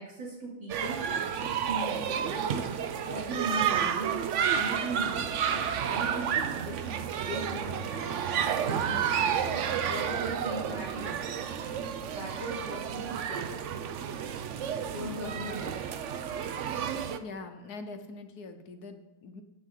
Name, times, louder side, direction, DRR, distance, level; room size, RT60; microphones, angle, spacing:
voice 1, 0.0-2.7 3.1-11.5 12.1-13.5 14.9-15.8, right 1 dB, 70° right, -4 dB, 3.2 m, -39 dB
sound 1, 0.7-17.2, right 8 dB, 85° right, 0.6 m, -31 dB
voice 2, 17.2-19.4, left 3 dB, 60° left, 7 dB, 1.3 m, -43 dB
13.5 x 9.1 x 3.8 m, 1.1 s
omnidirectional pair, 2.1 m